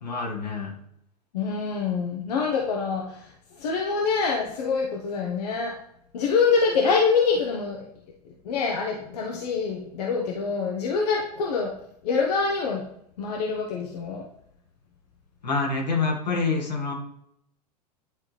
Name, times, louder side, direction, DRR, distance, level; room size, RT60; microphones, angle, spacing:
voice 1, 0.0-0.7 15.4-16.9, left 4 dB, 90° left, 0 dB, 1.7 m, -26 dB
voice 2, 1.3-3.2 3.6-5.7 6.1-7.9 8.4-11.7 12.0-12.8 13.2-14.2, left 5 dB, 70° left, 0 dB, 1.0 m, -25 dB
10.0 x 3.7 x 3.3 m, 0.73 s
hypercardioid pair, 100°, 21 cm